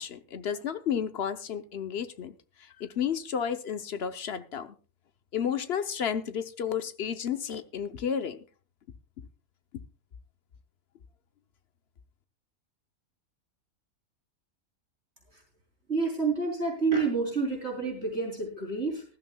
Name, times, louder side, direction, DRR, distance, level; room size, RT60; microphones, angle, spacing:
voice 1, 0.0-2.3 2.6-4.8 5.3-8.4, left 8 dB, 50° left, 11 dB, 0.9 m, -32 dB
voice 2, 15.9-19.0, right 4 dB, 45° right, 0 dB, 3.8 m, -28 dB
19.5 x 12.5 x 2.2 m, 0.35 s
omnidirectional pair, 1.6 m